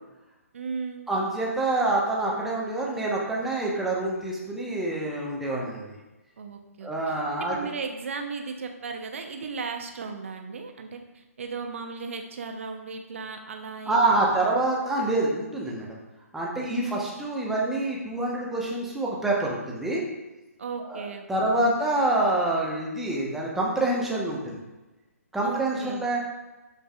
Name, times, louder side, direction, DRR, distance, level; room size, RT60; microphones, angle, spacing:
voice 1, 0.5-1.1 6.4-14.5 16.6-17.1 20.6-21.9 25.4-26.1, right 4 dB, 55° right, 4 dB, 1.1 m, -36 dB
voice 2, 1.1-5.9 6.8-7.6 13.9-16.0 16.3-20.0 20.9-24.6 25.3-26.2, right 2 dB, 5° right, -4 dB, 1.3 m, -26 dB
12.5 x 5.3 x 2.6 m, 1.1 s
figure-of-eight pair, 135°, 8 cm